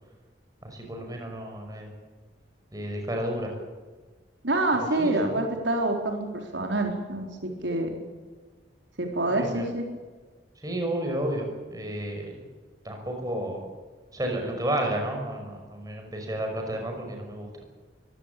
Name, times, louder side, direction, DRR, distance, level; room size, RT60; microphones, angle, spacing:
voice 1, 0.6-1.9 2.7-3.5 5.0-5.4 9.3-9.7 10.6-12.4 12.8-13.7 14.1-17.5, right 1 dB, 20° right, 2 dB, 5.7 m, -31 dB
voice 2, 4.4-7.9 9.0-9.8, right 2 dB, 85° right, 2 dB, 4.3 m, -27 dB
23.5 x 16.5 x 8.6 m, 1.4 s
head